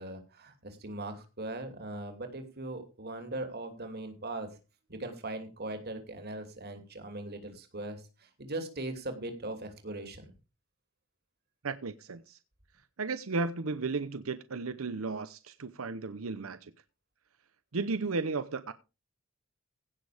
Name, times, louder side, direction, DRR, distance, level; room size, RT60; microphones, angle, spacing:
voice 1, 0.0-4.6 4.9-10.3, right 2 dB, 50° right, 2.8 m, -40 dB
voice 2, 11.6-12.4 13.0-16.7 17.7-18.7, right 3 dB, 90° right, 0.8 m, -34 dB
16.5 x 6.3 x 5.0 m
head